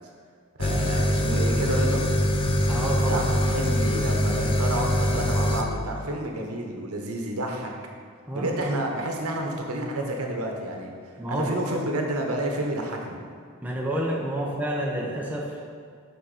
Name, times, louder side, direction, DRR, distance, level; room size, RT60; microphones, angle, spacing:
sound 1, 0.6-5.6, equal, 25° left, 0.4 m, -23 dB
voice 1, 0.6-2.0 3.1-7.7 8.3-10.9 11.3-13.2, right 1 dB, 80° right, 1 dB, 1.0 m, -30 dB
voice 2, 2.7-3.2 8.3-8.6 11.2-11.8 13.6-15.6, right 1 dB, 5° right, -3 dB, 0.7 m, -29 dB
6.2 x 5.6 x 4.1 m, 2.1 s
head